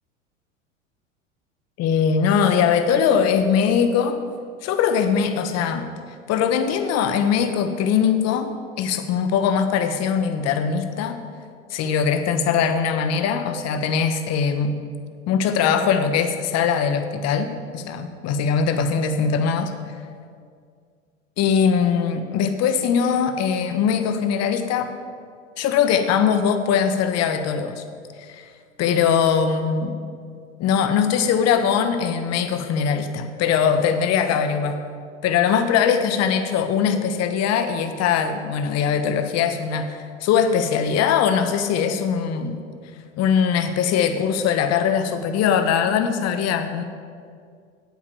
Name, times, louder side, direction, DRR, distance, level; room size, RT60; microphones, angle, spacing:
voice 1, 1.8-4.2 4.6-5.9 6.3-11.2 11.7-14.8 15.3-19.7 21.4-24.9 25.6-27.8 28.2-28.5 28.8-30.0 30.6-34.8 35.2-42.6 43.2-46.8, left 7 dB, 40° left, 8 dB, 1.2 m, -21 dB
9.1 x 7.8 x 7.0 m, 2.1 s
hypercardioid pair, 90°, 38 cm